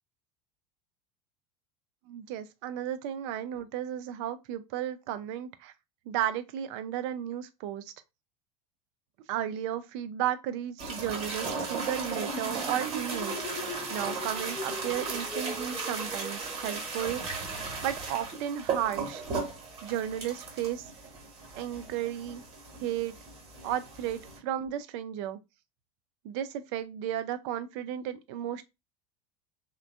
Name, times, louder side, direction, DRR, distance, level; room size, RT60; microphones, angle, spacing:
voice 1, 2.1-5.7 6.1-7.9 9.3-17.5 17.8-19.2 19.8-20.9 21.6-22.4 22.8-23.1 23.6-25.4 26.2-28.6, right 11 dB, 45° right, 0.4 m, -34 dB
sound 1, 10.8-24.4, right 4 dB, 30° right, 1.0 m, -36 dB
sound 2, 11.9-17.3, equal, 5° left, 0.8 m, -40 dB
3.2 x 2.2 x 2.3 m
figure-of-eight pair, 75°, 20 cm